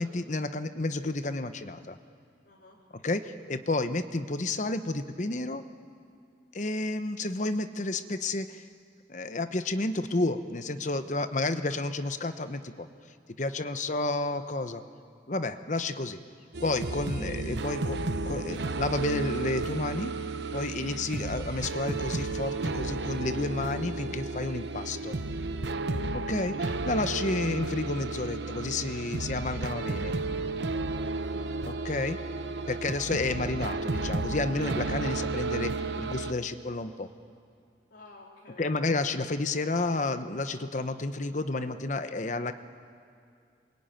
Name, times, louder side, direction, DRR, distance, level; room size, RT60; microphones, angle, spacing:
voice 1, 0.0-2.0 3.0-5.6 6.5-8.7 9.1-12.9 13.4-14.8 15.3-16.2 16.6-20.1 20.5-25.2 26.1-30.1 31.7-32.2 32.7-37.1 38.6-42.5, left 2 dB, 45° left, 10 dB, 0.9 m, -31 dB
voice 2, 2.4-2.8 13.6-14.0 17.2-17.3 20.7-21.0 25.6-26.1 31.2-31.5 37.9-38.7, left 2 dB, 80° left, -4 dB, 3.3 m, -53 dB
sound 1, 16.5-36.3, right 3 dB, 85° right, 0.9 m, -33 dB
28.0 x 23.0 x 9.2 m, 2.4 s
head